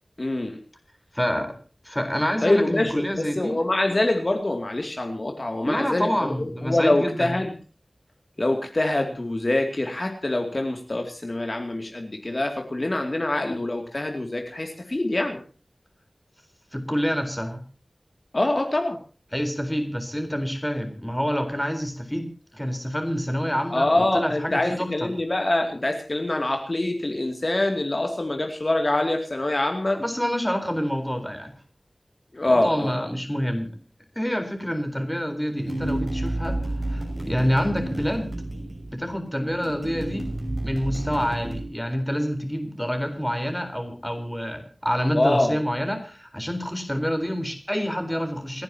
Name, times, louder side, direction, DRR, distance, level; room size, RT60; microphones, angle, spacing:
voice 1, 0.2-0.6 2.4-6.1 6.4-7.5 8.4-15.4 18.3-19.0 23.7-30.0 32.3-33.0 45.1-45.6, left 1 dB, 45° left, 4 dB, 2.5 m, -25 dB
voice 2, 1.1-1.5 1.8-3.6 5.6-7.3 16.7-17.6 19.3-22.3 22.5-25.1 29.9-31.5 32.4-33.7 34.2-36.6 36.9-38.3 38.9-40.3 40.6-48.6, equal, 5° left, 6 dB, 4.1 m, -27 dB
sound 1, 35.6-41.6, right 1 dB, 30° right, 6.4 m, -31 dB
29.0 x 10.5 x 2.9 m, 0.37 s
wide cardioid pair, 60°, 0 cm